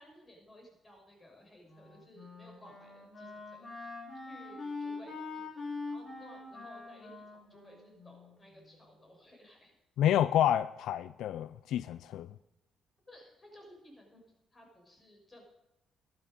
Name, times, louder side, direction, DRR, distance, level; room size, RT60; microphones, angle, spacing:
voice 1, 0.0-3.9 4.3-9.7 13.1-14.2 14.5-15.4, equal, 25° left, 5.5 m, -57 dB
Wind instrument woodwind instrument, 1.6-8.8, left 3 dB, 40° left, 5.8 m, -44 dB
voice 2, 10.0-12.3, left 11 dB, 80° left, 0.4 m, -29 dB
12.0 x 12.0 x 5.3 m
cardioid pair, 90°, 0 cm